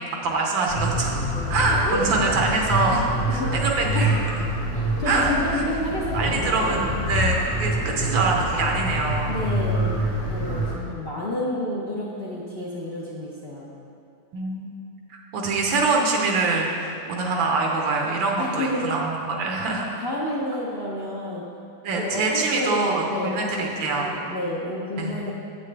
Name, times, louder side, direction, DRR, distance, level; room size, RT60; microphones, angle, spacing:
voice 1, 0.2-1.2 1.5-4.4 5.0-5.6 6.1-9.3 10.7-10.9 14.3-14.7 15.3-20.0 21.8-24.1 25.0-25.2, right 3 dB, 90° right, 0 dB, 1.7 m, -24 dB
sound 1, 0.7-10.7, right 1 dB, 30° left, 1.9 m, -26 dB
voice 2, 4.7-6.9 9.3-10.0 10.3-13.7 18.4-18.9 20.0-21.4 22.0-25.3, left 1 dB, 50° left, -6 dB, 0.7 m, -30 dB
8.3 x 7.3 x 3.3 m, 2.5 s
omnidirectional pair, 2.0 m